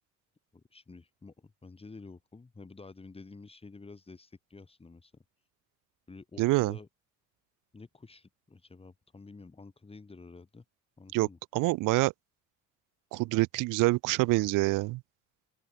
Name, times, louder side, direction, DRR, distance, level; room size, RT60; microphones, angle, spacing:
voice 1, 0.5-5.1 6.1-6.9 7.7-10.6 11.0-11.4, left 3 dB, 20° left, 5.5 m, -50 dB
voice 2, 6.4-6.8 11.1-11.3 11.5-12.1 13.1-15.0, right 21 dB, 75° right, 0.5 m, -26 dB
open air
cardioid pair, 135°, 32 cm